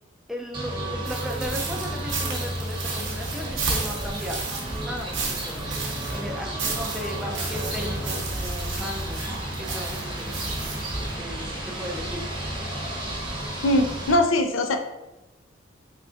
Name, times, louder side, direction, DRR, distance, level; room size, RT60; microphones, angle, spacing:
voice 1, 0.3-4.4 4.8-9.3 9.6-10.7 11.0-12.7, equal, ahead, -1 dB, 0.4 m, -36 dB
sound 1, 0.5-14.2, right 1 dB, 25° right, 0.7 m, -32 dB
sound 2, 1.0-11.2, right 3 dB, 65° right, 0.8 m, -33 dB
voice 2, 13.6-14.8, left 1 dB, 75° left, 5 dB, 0.4 m, -21 dB
3.7 x 3.3 x 2.4 m, 1.0 s
head